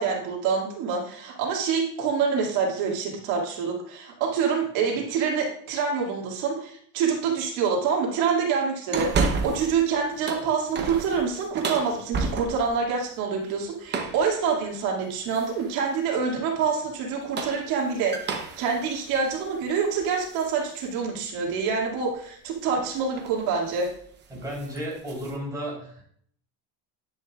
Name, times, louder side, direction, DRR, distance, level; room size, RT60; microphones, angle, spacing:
voice 1, 0.0-23.9, right 5 dB, 85° right, -1 dB, 2.4 m, -26 dB
sound 1, 8.9-9.8 10.1-12.8 13.9-14.3 15.3-15.8 17.1-20.5 21.0-21.1 22.6-22.8 23.1-23.4 23.7-24.0 24.3-25.4, right 4 dB, 25° right, 0.9 m, -31 dB
voice 2, 24.3-26.1, equal, 10° right, -4 dB, 3.7 m, -33 dB
10.0 x 10.0 x 2.4 m, 0.62 s
cardioid pair, 170°, 41 cm